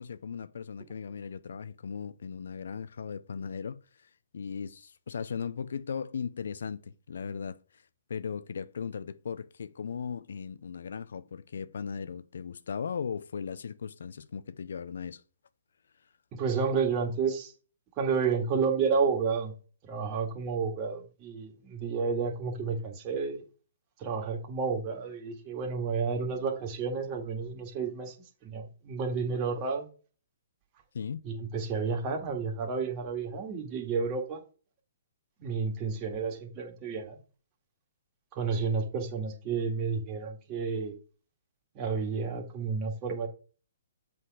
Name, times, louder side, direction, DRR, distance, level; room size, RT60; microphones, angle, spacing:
voice 1, 0.0-7.6 8.1-15.2 30.9-31.2, left 6 dB, 75° left, 0.6 m, -37 dB
voice 2, 16.3-17.5 18.0-19.5 19.8-23.4 24.0-28.2 28.4-29.9 31.2-34.4 35.4-37.2 38.3-40.9 41.7-43.3, right 5 dB, 30° right, 1.9 m, -31 dB
7.7 x 4.1 x 4.9 m
hypercardioid pair, 140°, 0 cm